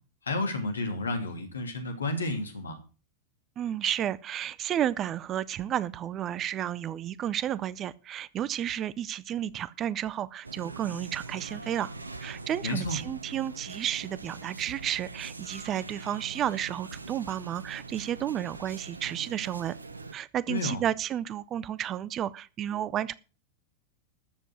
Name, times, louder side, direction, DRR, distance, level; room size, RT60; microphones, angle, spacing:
voice 1, 0.2-2.8 12.6-13.0 20.5-20.8, left 2 dB, 75° left, 2.8 m, -31 dB
voice 2, 3.6-11.9 12.2-19.8 20.1-23.1, right 10 dB, 30° right, 0.6 m, -32 dB
sound 1, 10.4-20.1, right 3 dB, 80° right, 0.9 m, -43 dB
13.5 x 7.6 x 6.2 m
figure-of-eight pair, 90°, 0 cm